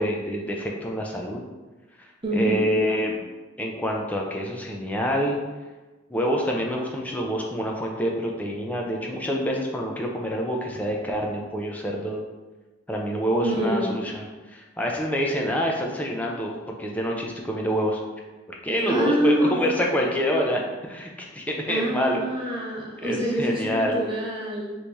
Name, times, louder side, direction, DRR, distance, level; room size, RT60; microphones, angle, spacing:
voice 1, 0.0-1.4 2.3-3.2 3.6-5.4 6.1-12.2 12.9-18.0 18.6-22.7 23.0-23.9, equal, 10° left, -1 dB, 0.4 m, -27 dB
voice 2, 2.2-2.6 13.4-13.9 18.8-19.6 21.7-24.8, equal, 25° right, -5 dB, 0.7 m, -26 dB
3.1 x 2.6 x 3.4 m, 1.2 s
head